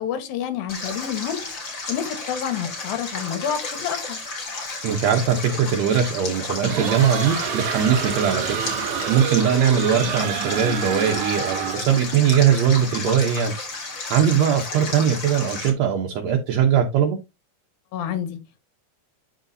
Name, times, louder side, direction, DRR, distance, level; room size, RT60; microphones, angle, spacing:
voice 1, 0.0-1.5 1.9-4.2 17.9-18.4, left 9 dB, 80° left, 3.1 m, -28 dB
Stream, 0.7-15.7, left 3 dB, 35° left, 3.5 m, -32 dB
voice 2, 4.8-8.6 9.1-13.5 14.1-17.2, right 8 dB, 70° right, 1.7 m, -20 dB
sound 1, 6.6-12.0, right 8 dB, 90° right, 1.2 m, -28 dB
13.0 x 4.9 x 2.7 m
omnidirectional pair, 4.2 m